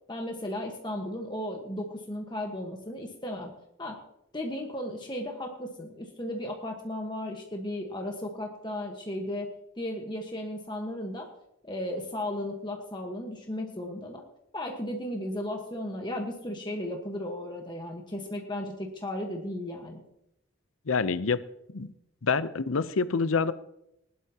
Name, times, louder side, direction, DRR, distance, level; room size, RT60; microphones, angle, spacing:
voice 1, 0.1-3.5 3.8-4.0 4.3-9.5 9.8-11.3 11.6-14.2 14.5-20.0, left 1 dB, 20° left, 1 dB, 1.3 m, -35 dB
voice 2, 20.9-21.4 21.7-21.9 22.2-23.5, left 5 dB, 90° left, 13 dB, 0.7 m, -26 dB
20.0 x 11.5 x 2.9 m, 0.81 s
head